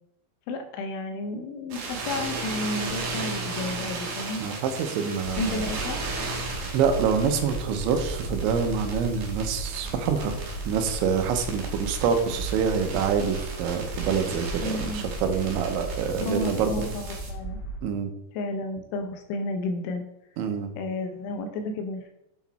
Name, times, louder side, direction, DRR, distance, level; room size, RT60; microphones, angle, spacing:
voice 1, 0.5-4.4 5.4-6.0 14.6-15.0 16.2-17.6 18.3-20.1 20.8-22.1, left 2 dB, 90° left, 5 dB, 3.2 m, -32 dB
sound 1, 1.7-17.3, right 3 dB, 55° right, 2.9 m, -36 dB
voice 2, 4.4-5.7 6.7-10.4 10.7-16.7 17.8-18.1 20.4-20.7, right 6 dB, 85° right, 6 dB, 3.2 m, -26 dB
sound 2, 5.2-17.8, right 2 dB, 75° left, 2.6 m, -36 dB
8.1 x 6.1 x 4.3 m, 0.83 s
omnidirectional pair, 5.3 m